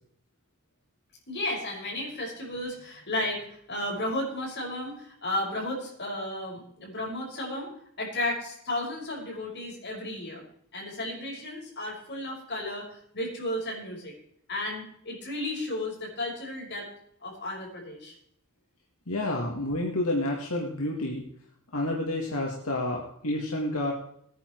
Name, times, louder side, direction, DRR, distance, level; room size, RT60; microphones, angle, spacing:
voice 1, 1.3-3.4 3.7-7.7 8.0-10.4 10.7-14.1 14.5-16.9 17.2-18.1, left 1 dB, 55° left, -1 dB, 6.1 m, -33 dB
voice 2, 19.1-21.2 21.7-23.9, left 1 dB, 85° left, -1 dB, 2.3 m, -29 dB
19.0 x 10.0 x 4.8 m, 0.69 s
head